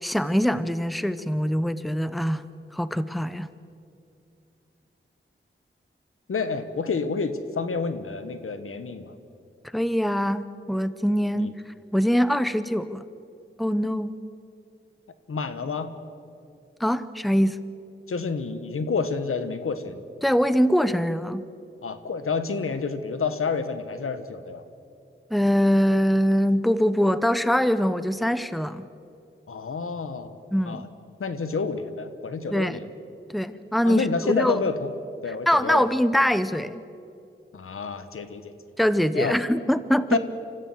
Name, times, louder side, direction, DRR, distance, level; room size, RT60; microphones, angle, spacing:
voice 1, 0.0-2.4 2.7-3.5 9.7-11.5 11.9-13.0 13.6-14.1 16.8-17.6 20.2-21.4 25.3-28.9 30.5-30.8 32.5-32.8 33.3-34.6 35.5-36.8 38.8-40.2, equal, ahead, 14 dB, 0.8 m, -23 dB
voice 2, 6.3-9.1 11.3-11.5 15.3-15.9 18.1-20.0 21.8-24.6 29.5-30.4 30.6-30.9 31.2-32.8 33.8-34.9 35.2-35.9 37.5-38.5 39.1-39.4 40.1-40.2, left 4 dB, 85° left, 10 dB, 1.3 m, -29 dB
26.0 x 15.0 x 7.9 m, 2.6 s
wide cardioid pair, 65°, 21 cm